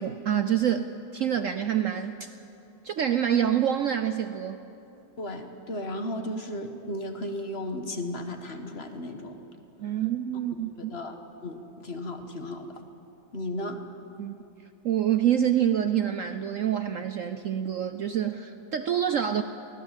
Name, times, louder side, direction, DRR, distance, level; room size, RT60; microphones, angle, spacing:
voice 1, 0.0-2.3 2.8-4.6 9.8-10.9 14.2-14.4 14.8-19.4, right 9 dB, 65° right, 9 dB, 0.8 m, -26 dB
voice 2, 5.2-9.5 10.9-12.7 13.3-13.8, left 1 dB, 35° left, 6 dB, 1.5 m, -35 dB
24.0 x 17.5 x 7.5 m, 2.8 s
omnidirectional pair, 2.0 m